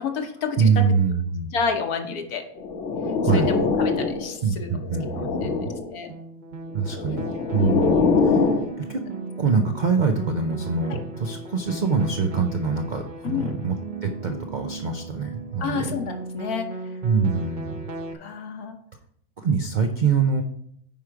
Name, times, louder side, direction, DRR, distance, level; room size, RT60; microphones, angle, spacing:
voice 1, 0.0-0.8 1.5-2.4 3.3-4.7 5.2-5.5 5.9-6.1 7.6-7.9 10.9-11.0 13.2-13.5 15.6-16.7 17.2-17.4 18.2-18.8, left 6 dB, 70° left, 5 dB, 1.5 m, -29 dB
voice 2, 0.6-1.5 3.2-3.7 4.4-5.7 6.7-7.2 7.5-8.5 8.8-9.0 9.4-13.8 14.0-15.9 17.0-17.9 19.4-20.4, right 5 dB, 60° right, 5 dB, 0.4 m, -24 dB
sound 1, 2.6-4.4 4.8-5.9 6.8-8.7, left 4 dB, 55° left, 1.2 m, -23 dB
sound 2, 6.1-18.1, right 3 dB, 40° right, 0.8 m, -36 dB
9.3 x 5.0 x 4.7 m, 0.68 s
omnidirectional pair, 1.7 m